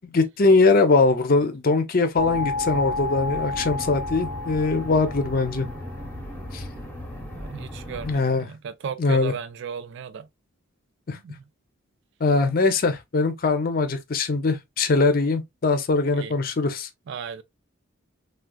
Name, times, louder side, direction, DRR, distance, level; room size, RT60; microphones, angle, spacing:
voice 1, 0.0-5.7 6.5-6.6 8.0-8.5 9.0-9.3 11.1-11.2 12.2-16.9, left 3 dB, 45° left, 0.5 m, -21 dB
sound 1, 2.2-8.1, left 2 dB, 10° left, 0.8 m, -32 dB
voice 2, 7.4-10.3 11.2-11.3 16.1-16.3 17.1-17.4, right 7 dB, 55° right, 0.3 m, -35 dB
3.6 x 2.3 x 2.2 m
head